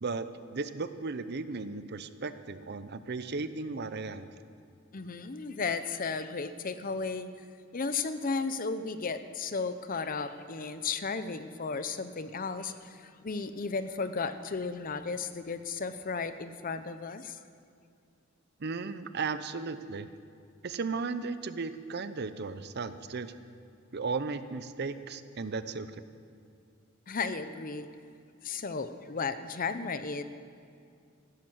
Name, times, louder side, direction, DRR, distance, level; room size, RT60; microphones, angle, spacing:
voice 1, 0.5-4.3 18.6-20.1 20.6-23.3 23.9-25.9, right 4 dB, 55° right, 12 dB, 0.7 m, -35 dB
voice 2, 4.9-7.3 7.7-17.4 27.1-27.9 28.4-30.2, left 4 dB, 45° left, 11 dB, 0.7 m, -34 dB
15.0 x 12.0 x 7.9 m, 2.3 s
head